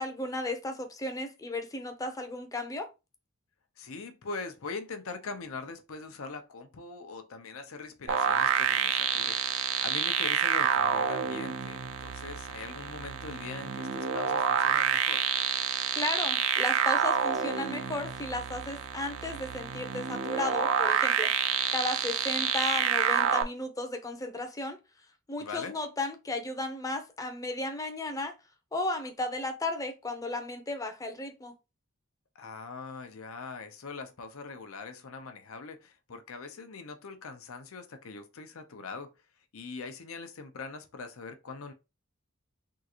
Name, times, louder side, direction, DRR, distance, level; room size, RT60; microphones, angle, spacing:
voice 1, 0.0-2.9 16.0-21.3 21.7-24.8 25.3-28.3 28.7-31.5, left 2 dB, 15° left, 0.6 m, -34 dB
voice 2, 3.8-15.2 25.4-25.8 32.3-39.1 39.5-41.7, left 4 dB, 80° left, 0.7 m, -42 dB
sound 1, 8.1-23.4, right 8 dB, 65° right, 0.4 m, -28 dB
3.7 x 2.4 x 2.9 m
head